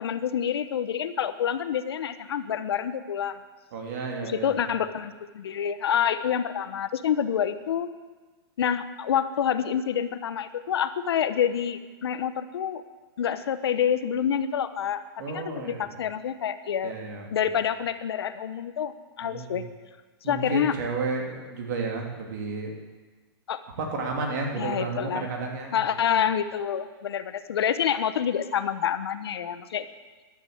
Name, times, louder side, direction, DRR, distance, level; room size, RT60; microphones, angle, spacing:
voice 1, 0.0-3.4 4.2-7.9 8.6-12.8 13.2-15.0 15.3-16.9 17.3-19.6 20.3-20.7 23.5-23.6 24.6-25.3 25.7-29.9, left 8 dB, 70° left, 11 dB, 1.1 m, -27 dB
voice 2, 3.7-4.5 15.2-16.0 16.8-17.3 19.2-19.6 20.2-22.7 23.8-25.8, right 3 dB, 45° right, 1 dB, 3.0 m, -32 dB
13.5 x 11.5 x 8.0 m, 1.3 s
hypercardioid pair, 170°, 13 cm